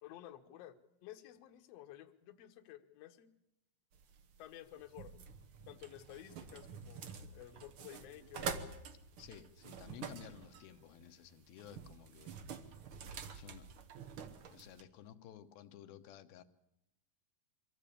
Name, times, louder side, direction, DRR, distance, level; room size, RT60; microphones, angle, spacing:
voice 1, 0.0-3.3 4.4-5.1 5.7-8.9, left 13 dB, 65° left, 6 dB, 1.7 m, -53 dB
sound 1, 3.9-14.8, right 6 dB, 90° right, 1.1 m, -48 dB
voice 2, 9.2-12.4 13.0-13.7 14.5-16.4, left 11 dB, 85° left, 8 dB, 2.8 m, -54 dB
23.5 x 14.5 x 8.5 m, 0.89 s
omnidirectional pair, 4.2 m